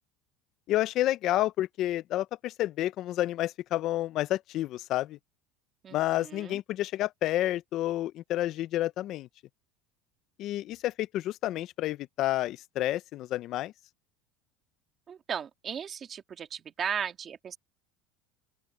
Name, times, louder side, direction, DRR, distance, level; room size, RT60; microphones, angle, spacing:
voice 1, 0.7-5.2 5.9-9.3 10.4-13.7, left 14 dB, 50° left, 0.6 m, -30 dB
voice 2, 5.8-6.6 15.1-17.6, right 7 dB, 30° right, 2.2 m, -36 dB
open air
supercardioid pair, 135°, 0 cm